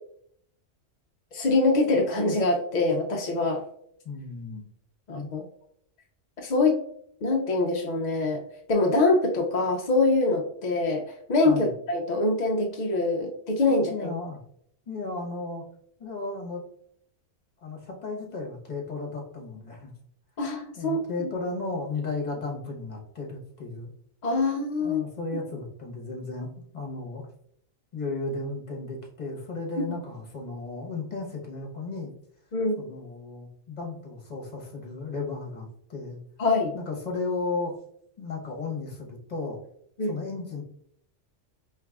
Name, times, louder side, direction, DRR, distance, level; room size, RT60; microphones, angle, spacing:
voice 1, 1.3-3.6 5.1-5.4 6.4-6.8 7.2-8.4 8.7-11.0 11.3-14.1 20.4-21.0 24.2-25.0 29.8-29.9 32.5-32.9 36.4-36.7 40.0-40.2, left 2 dB, 55° left, 0 dB, 0.4 m, -24 dB
voice 2, 4.0-4.6 11.4-11.7 13.9-14.4 14.9-15.6 16.0-16.6 17.6-19.9 20.8-23.9 24.8-26.5 26.7-27.3 27.9-32.1 32.8-36.2 36.7-37.7 38.2-39.6 40.1-40.6, left 3 dB, 35° left, 0 dB, 1.0 m, -34 dB
4.7 x 3.3 x 2.3 m, 0.68 s
omnidirectional pair, 1.3 m